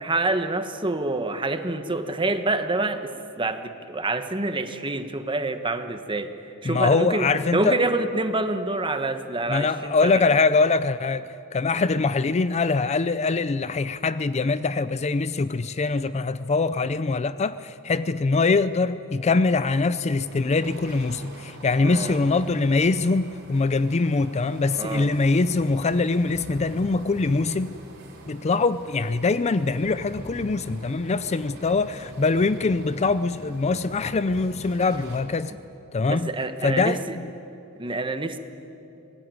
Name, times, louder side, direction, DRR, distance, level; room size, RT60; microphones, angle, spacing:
voice 1, 0.0-6.3 6.6-10.4 21.8-22.2 24.8-25.1 36.1-37.2 37.8-38.4, right 2 dB, 20° right, 8 dB, 1.3 m, -27 dB
voice 2, 6.6-7.8 9.5-27.8 28.3-35.5 35.9-36.3 36.6-37.0, left 3 dB, 30° left, 14 dB, 0.5 m, -23 dB
sound 1, 20.1-35.2, right 1 dB, 50° right, 4.7 m, -42 dB
24.0 x 20.0 x 9.5 m, 2.8 s
head